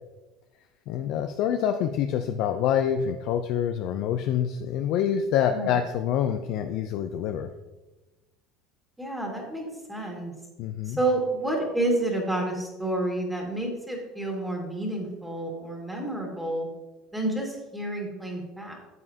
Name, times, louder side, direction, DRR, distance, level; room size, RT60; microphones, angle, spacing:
voice 1, 0.9-7.5 10.6-11.0, left 9 dB, 65° left, 7 dB, 0.5 m, -26 dB
voice 2, 9.0-10.4 10.9-16.7 17.1-18.8, right 2 dB, 5° right, -1 dB, 2.0 m, -29 dB
9.4 x 7.6 x 2.8 m, 1.1 s
supercardioid pair, 110°, 0 cm